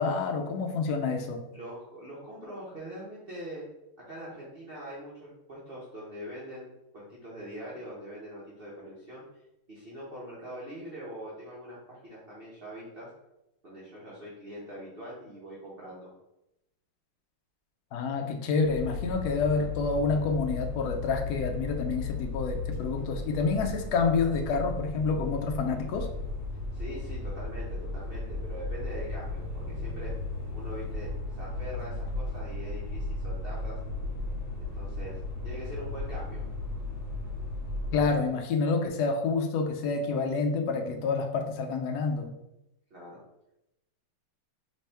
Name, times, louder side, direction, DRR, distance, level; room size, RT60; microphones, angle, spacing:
voice 1, 0.0-1.4 17.9-26.1 37.9-42.3, left 4 dB, 80° left, 4 dB, 0.9 m, -28 dB
voice 2, 1.5-3.6 4.1-9.2 9.7-13.1 13.6-16.1 26.7-30.1 30.5-33.8 34.6-35.2 35.4-36.4 42.9-43.2, equal, 40° right, -7 dB, 0.8 m, -43 dB
sound 1, 18.6-38.1, left 2 dB, 40° left, 2.2 m, -35 dB
4.2 x 3.5 x 3.4 m, 0.89 s
omnidirectional pair, 2.4 m